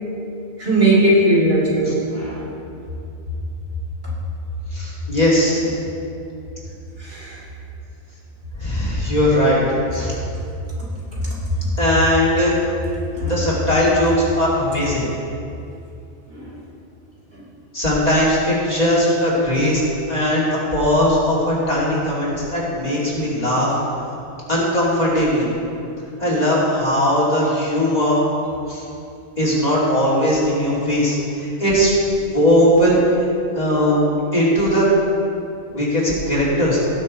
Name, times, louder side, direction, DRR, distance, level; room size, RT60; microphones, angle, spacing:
voice 1, 0.6-2.4 7.0-7.4 13.1-13.3 16.3-16.5, right 1 dB, 55° right, -7 dB, 3.4 m, -18 dB
voice 2, 4.7-5.6 8.6-9.6 9.9-10.1 11.8-12.5 13.2-15.0 17.7-19.8 20.1-23.7 24.5-25.5 26.2-28.2 28.7-28.8 29.4-31.9 32.3-33.0 33.6-34.1 34.3-34.9 35.7-36.8, equal, 35° left, -7 dB, 2.7 m, -19 dB
18.0 x 6.2 x 4.3 m, 2.6 s
omnidirectional pair, 1.2 m